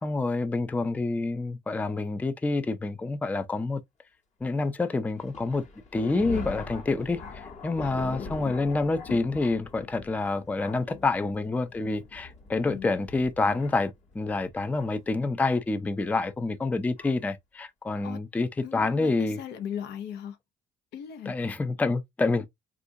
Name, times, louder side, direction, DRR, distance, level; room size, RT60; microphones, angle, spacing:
voice 1, 0.0-3.8 4.4-5.6 5.9-19.4 21.3-22.5, left 3 dB, 10° left, 0.3 m, -28 dB
Thunder, 5.2-15.1 15.9-16.0 17.0-17.1 17.9-18.1, left 4 dB, 45° left, 1.1 m, -42 dB
voice 2, 7.8-8.3 12.5-12.9 18.0-18.2 18.6-20.4 20.9-21.3, left 9 dB, 80° left, 0.7 m, -38 dB
3.5 x 2.5 x 2.5 m
cardioid pair, 110°, 17 cm